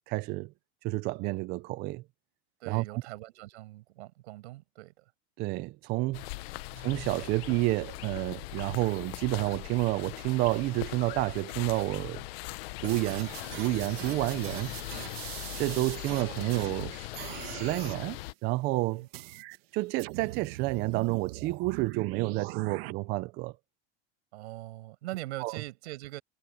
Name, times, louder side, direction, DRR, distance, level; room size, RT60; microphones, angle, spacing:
voice 1, 0.1-0.5 0.8-2.0 2.7-3.0 5.4-6.2 6.8-12.2 12.8-14.7 15.6-19.0 19.7-23.5 25.4-25.5, right 20 dB, 30° right, 0.4 m, -30 dB
voice 2, 2.6-5.1 6.7-6.9 18.9-19.1 24.3-26.2, right 18 dB, 80° right, 6.0 m, -42 dB
sound 1, 6.1-18.3, left 20 dB, 65° left, 0.9 m, -40 dB
sound 2, 12.8-16.8 17.1-18.0 19.1-19.6 20.0-22.9, right 20 dB, 65° right, 1.7 m, -41 dB
supercardioid pair, 160°, 33 cm